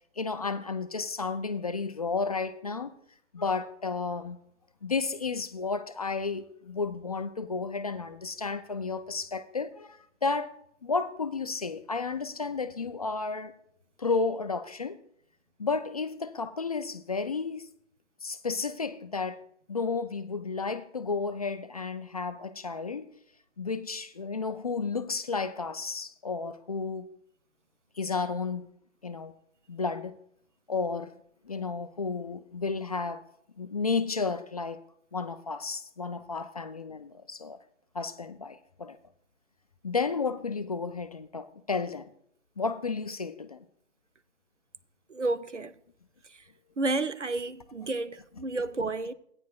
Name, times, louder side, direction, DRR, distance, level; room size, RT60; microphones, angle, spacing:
voice 1, 0.2-2.9 3.3-4.4 4.8-10.5 10.8-13.5 14.0-15.0 15.6-17.7 18.2-19.4 19.7-23.1 23.6-27.1 28.0-28.7 29.0-29.3 29.7-30.2 30.7-31.1 31.5-33.2 33.6-34.8 35.1-37.6 37.9-39.0 39.8-42.1 42.6-43.6, left 4 dB, 35° left, 0.4 m, -32 dB
voice 2, 45.1-45.7 46.8-49.1, right 2 dB, 85° right, 0.9 m, -31 dB
16.5 x 9.5 x 2.3 m
figure-of-eight pair, 135°, 35 cm